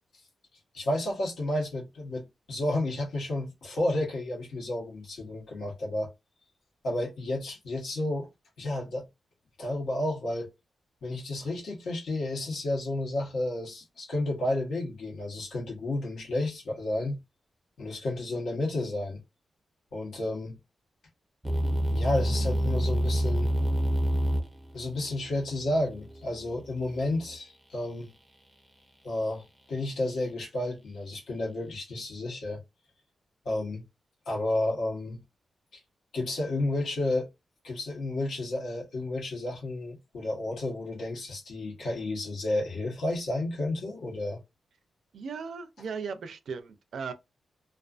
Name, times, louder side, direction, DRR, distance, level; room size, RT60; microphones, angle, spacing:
voice 1, 0.7-6.1 6.8-8.3 8.6-9.0 9.6-10.5 11.0-17.2 17.8-19.2 19.9-20.6 21.9-23.5 24.7-28.1 29.0-32.6 33.4-33.8 34.3-35.2 36.1-37.3 37.6-44.4, left 1 dB, 90° left, 1.1 m, -31 dB
sound 1, 21.4-27.4, equal, 5° right, 0.5 m, -29 dB
voice 2, 45.1-47.1, right 5 dB, 75° right, 0.4 m, -37 dB
2.4 x 2.3 x 2.4 m
wide cardioid pair, 130°, 0 cm